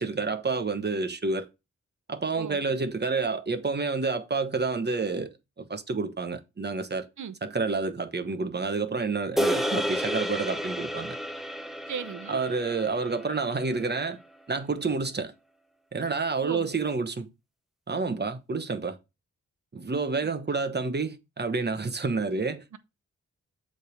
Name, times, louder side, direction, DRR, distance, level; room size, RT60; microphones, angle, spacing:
voice 1, 0.0-1.5 2.1-7.1 7.4-11.2 12.3-14.2 14.5-15.3 15.9-17.3 17.9-19.0 19.7-22.6, right 4 dB, 35° right, 1.1 m, -29 dB
sound 1, 9.4-13.8, equal, ahead, 0.8 m, -31 dB
voice 2, 11.9-12.4 16.4-16.7 20.2-20.6 22.7-22.8, right 7 dB, 70° right, 0.8 m, -37 dB
7.8 x 3.5 x 6.2 m
cardioid pair, 75°, 30 cm